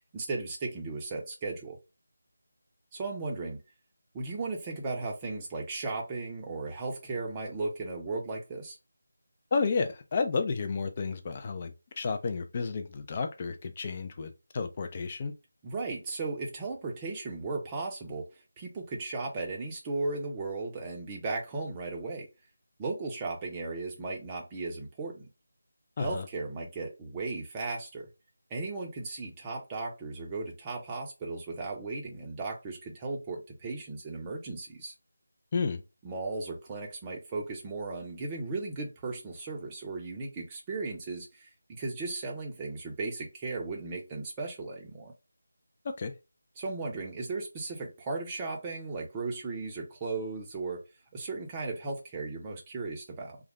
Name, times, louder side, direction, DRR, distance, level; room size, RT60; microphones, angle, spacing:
voice 1, 0.1-1.8 2.9-3.6 4.1-8.8 15.6-18.3 18.6-22.3 22.8-25.3 26.0-28.1 28.5-34.9 36.0-45.1 46.6-50.8 51.1-53.4, right 3 dB, 15° right, 0.6 m, -36 dB
voice 2, 9.5-15.3 26.0-26.3 35.5-35.8 45.8-46.1, left 4 dB, 30° left, 0.4 m, -31 dB
2.4 x 2.0 x 3.4 m
figure-of-eight pair, 165°, 0 cm